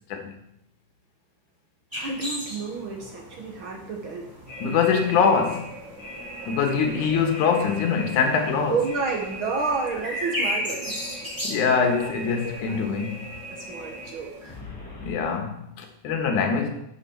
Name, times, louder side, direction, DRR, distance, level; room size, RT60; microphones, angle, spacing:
sound 1, 1.9-14.6, equal, 5° right, 3.0 m, -37 dB
voice 1, 2.0-4.3 6.4-6.5 8.7-10.9 11.4-11.6 12.7-12.9 13.5-14.6, right 4 dB, 60° right, 1 dB, 1.3 m, -30 dB
sound 2, 4.5-15.3, right 1 dB, 20° left, 3.4 m, -40 dB
voice 2, 4.6-5.7 6.5-8.8 11.4-13.3 15.0-16.7, left 6 dB, 65° left, 4 dB, 2.7 m, -23 dB
11.5 x 7.9 x 4.5 m, 0.77 s
omnidirectional pair, 3.9 m